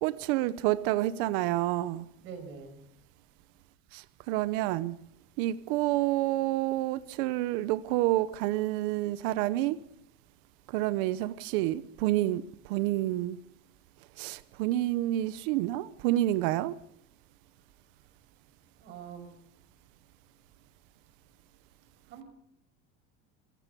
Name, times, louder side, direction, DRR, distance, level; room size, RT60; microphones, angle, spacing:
voice 1, 0.0-2.1 3.9-5.0 5.4-9.8 10.7-13.4 14.2-16.7, right 15 dB, 60° right, 0.9 m, -29 dB
voice 2, 2.2-2.8 18.8-19.3 22.1-22.2, right 6 dB, 40° right, 5.9 m, -44 dB
25.5 x 15.5 x 6.9 m
cardioid pair, 180°, 30 cm